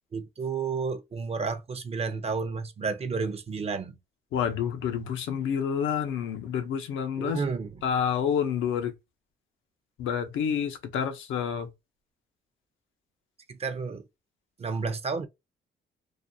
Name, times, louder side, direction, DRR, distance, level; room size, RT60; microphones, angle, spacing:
voice 1, 0.1-4.0 7.2-7.8 13.5-14.0 14.6-15.3, right 5 dB, 30° right, 0.5 m, -31 dB
voice 2, 4.3-7.4 7.8-8.9 10.0-11.7, left 8 dB, 80° left, 0.6 m, -28 dB
2.3 x 2.2 x 2.6 m
cardioid pair, 90°, 20 cm